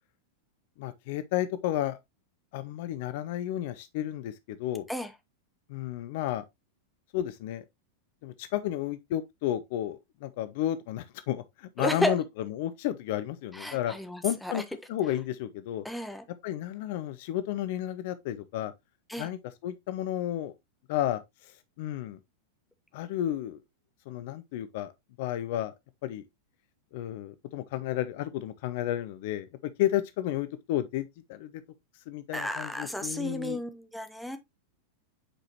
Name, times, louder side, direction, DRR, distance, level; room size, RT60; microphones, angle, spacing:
voice 1, 0.8-2.0 2.5-4.9 5.7-6.4 7.1-7.6 8.2-13.9 14.2-14.6 14.9-15.8 16.4-18.7 19.2-20.5 20.9-22.2 22.9-23.6 24.1-24.9 25.2-25.7 26.0-26.2 26.9-29.5 29.8-31.5 32.1-33.6, left 12 dB, 50° left, 0.5 m, -32 dB
voice 2, 11.8-12.1 13.5-14.6 15.8-16.2 19.1-19.3 32.3-34.4, equal, ahead, 1.1 m, -32 dB
8.7 x 4.9 x 2.9 m
figure-of-eight pair, 90°, 0 cm